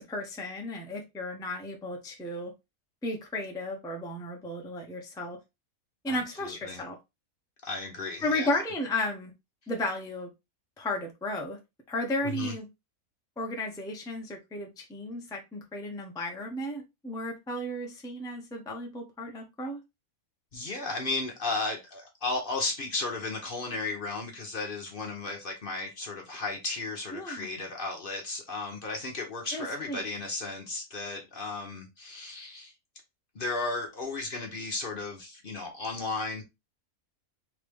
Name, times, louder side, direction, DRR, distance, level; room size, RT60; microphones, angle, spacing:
voice 1, 0.0-2.5 3.0-5.4 6.0-7.0 8.2-9.3 9.7-10.3 10.8-11.6 11.9-12.7 13.4-19.8 27.1-27.5 29.5-30.1, left 1 dB, 5° left, 0.6 m, -34 dB
voice 2, 6.1-6.8 7.6-8.5 12.2-12.5 20.5-32.7 33.3-36.4, left 3 dB, 45° left, 0.9 m, -34 dB
3.6 x 3.2 x 3.4 m
omnidirectional pair, 1.5 m